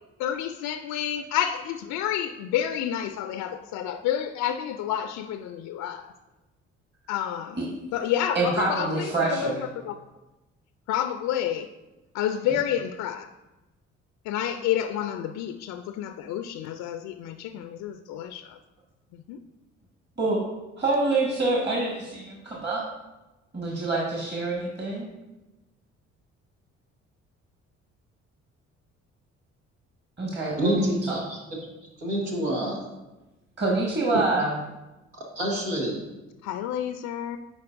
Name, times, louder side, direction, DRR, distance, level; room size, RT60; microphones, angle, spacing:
voice 1, 0.2-6.1 7.1-7.6 7.9-8.9 9.2-9.6 9.8-9.9 10.9-11.7 12.1-13.3 14.3-18.6 19.3-19.4 36.4-37.4, left 10 dB, 55° left, 9 dB, 0.4 m, -29 dB
voice 2, 8.3-9.6 12.4-12.6 20.2-20.4 20.8-22.9 23.5-25.1 30.2-31.2 33.6-34.5, right 3 dB, 30° right, -2 dB, 1.5 m, -26 dB
voice 3, 30.6-31.4 32.0-32.8 35.3-36.0, equal, 85° right, -3 dB, 1.5 m, -27 dB
9.8 x 4.2 x 2.5 m, 1.0 s
hypercardioid pair, 50°, 35 cm